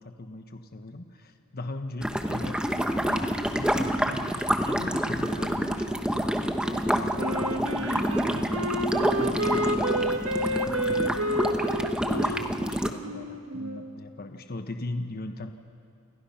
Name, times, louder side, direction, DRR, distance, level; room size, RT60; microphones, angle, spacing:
voice 1, 0.0-5.9 6.6-11.8 12.1-15.5, left 2 dB, 45° left, 6 dB, 1.2 m, -40 dB
sound 1, 2.0-12.9, equal, 5° right, 1.1 m, -27 dB
Wind instrument woodwind instrument, 7.2-13.9, right 1 dB, 75° right, 1.7 m, -30 dB
29.5 x 28.5 x 5.9 m, 2.3 s
head